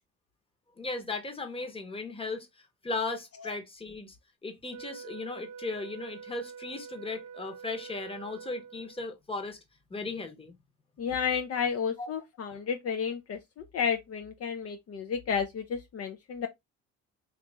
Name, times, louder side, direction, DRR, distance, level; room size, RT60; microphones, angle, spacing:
voice 1, 0.8-4.2 4.4-9.6 9.9-10.6 12.0-12.1, left 3 dB, 20° left, 0.9 m, -37 dB
Wind instrument woodwind instrument, 4.7-9.1, right 6 dB, 85° right, 0.6 m, -46 dB
voice 2, 11.0-16.5, left 6 dB, 50° left, 0.5 m, -32 dB
2.9 x 2.5 x 3.3 m
cardioid pair, 90°, 30 cm